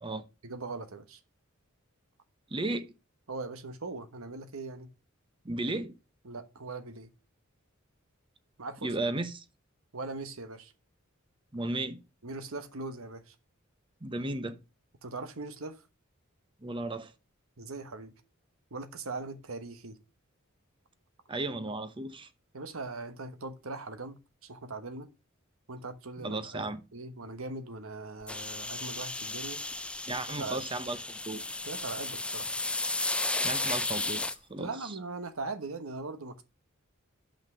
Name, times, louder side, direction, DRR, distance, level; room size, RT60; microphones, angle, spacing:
voice 1, 0.4-1.2 3.3-4.9 6.2-7.1 8.6-8.9 9.9-10.7 12.2-13.3 15.0-15.8 17.6-18.1 18.7-20.0 22.5-25.1 25.7-26.7 26.9-29.6 30.3-30.7 31.7-32.6 34.6-36.4, right 3 dB, 75° right, 1.2 m, -40 dB
voice 2, 2.5-2.9 5.4-5.9 8.8-9.4 11.5-12.0 14.0-14.6 16.6-17.1 21.3-22.3 26.2-26.8 30.1-31.4 33.4-34.2 34.5-34.9, right 2 dB, 25° right, 0.8 m, -34 dB
sound 1, 28.3-34.4, left 2 dB, 5° left, 0.4 m, -34 dB
5.8 x 5.8 x 6.8 m
head